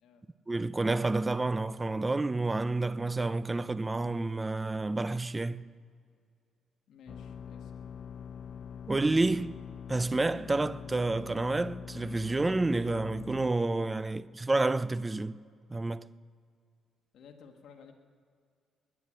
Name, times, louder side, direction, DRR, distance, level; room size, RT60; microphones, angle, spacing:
voice 1, 0.5-5.7 8.9-9.6 9.9-15.4 15.7-16.1, right 2 dB, 20° right, 0.5 m, -29 dB
voice 2, 6.9-7.7 17.1-17.9, left 6 dB, 70° left, 1.7 m, -54 dB
sound 1, 7.1-13.5, left 7 dB, 55° left, 0.4 m, -44 dB
21.5 x 10.0 x 6.5 m
cardioid pair, 90°, 0 cm